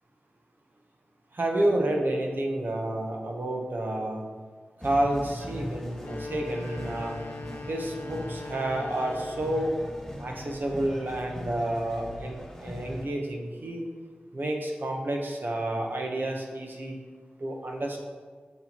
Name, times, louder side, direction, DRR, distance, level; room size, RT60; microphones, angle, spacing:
voice 1, 1.3-4.3 4.8-7.2 7.7-9.7 10.2-13.8 14.3-17.0 17.4-18.0, right 1 dB, 65° right, 1 dB, 1.0 m, -30 dB
sound 1, 4.8-13.1, left 1 dB, 10° left, 1.9 m, -40 dB
sound 2, 5.9-9.9, left 3 dB, 70° left, 0.6 m, -41 dB
6.7 x 6.3 x 3.0 m, 1.5 s
cardioid pair, 40°, 4 cm